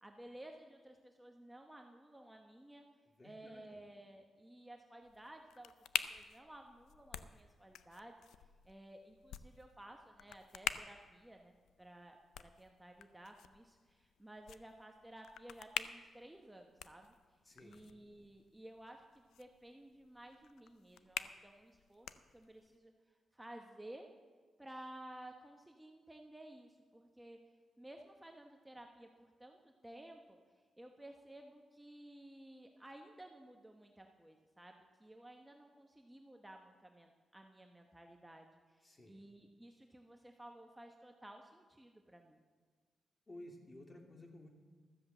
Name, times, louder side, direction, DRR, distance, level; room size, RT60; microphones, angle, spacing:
voice 1, 0.0-2.8 3.2-8.1 8.4-22.9 23.3-24.1 24.6-27.4 27.8-30.4 30.8-42.4, right 1 dB, 10° right, 3 dB, 1.0 m, -55 dB
voice 2, 3.1-3.6 17.4-17.8 38.8-39.2 43.3-44.5, left 1 dB, 25° left, 2 dB, 2.4 m, -55 dB
sound 1, 5.0-22.8, left 9 dB, 90° left, 0.4 m, -47 dB
13.0 x 7.6 x 7.6 m, 1.5 s
cardioid pair, 70°, 0 cm